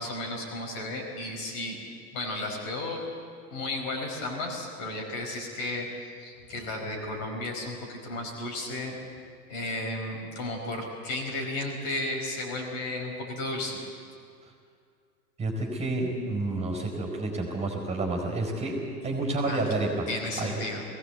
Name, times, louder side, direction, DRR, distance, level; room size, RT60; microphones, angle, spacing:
voice 1, 0.0-1.8 2.1-3.0 3.5-5.9 6.2-9.0 9.5-13.8 19.4-19.8 20.1-20.8, left 2 dB, 40° left, 1 dB, 5.2 m, -33 dB
voice 2, 15.4-18.8 19.0-20.1 20.4-20.6, right 2 dB, 15° right, 1 dB, 4.4 m, -29 dB
20.5 x 17.0 x 8.1 m, 2.2 s
hypercardioid pair, 105°, 47 cm